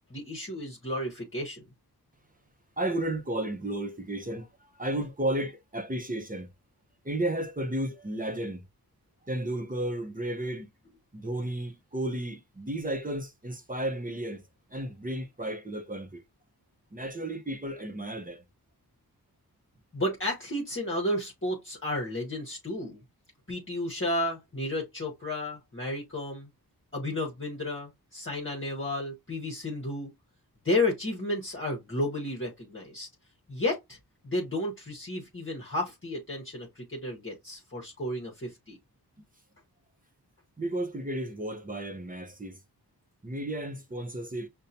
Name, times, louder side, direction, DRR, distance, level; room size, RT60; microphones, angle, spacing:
voice 1, 0.1-1.6 19.9-23.0 23.5-26.5 26.9-30.1 30.6-33.1 33.5-34.0 34.2-38.8, left 1 dB, 30° left, 1.1 m, -32 dB
voice 2, 2.8-6.5 7.0-8.6 9.2-10.7 11.1-14.4 14.7-16.2 16.9-18.4 40.6-42.6 43.2-44.5, right 1 dB, 20° right, 0.8 m, -33 dB
5.4 x 2.2 x 2.7 m
wide cardioid pair, 80°, 38 cm